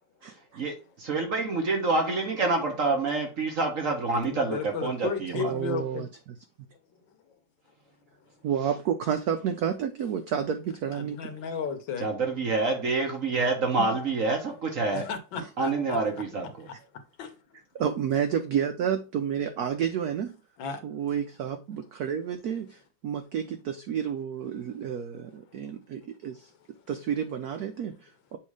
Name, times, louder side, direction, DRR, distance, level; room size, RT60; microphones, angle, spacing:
voice 1, 0.5-5.5 12.0-15.1 15.6-16.7, right 3 dB, 50° right, 1.1 m, -27 dB
voice 2, 4.1-6.1 10.9-12.1 14.9-16.0 16.4-16.7 17.2-17.3 20.6-20.8, left 6 dB, 70° left, 1.6 m, -34 dB
voice 3, 5.3-6.1 8.4-11.3 13.8-13.9 17.8-20.3 20.8-26.5 26.9-28.4, right 8 dB, 80° right, 0.8 m, -30 dB
7.2 x 2.7 x 4.8 m
omnidirectional pair, 2.3 m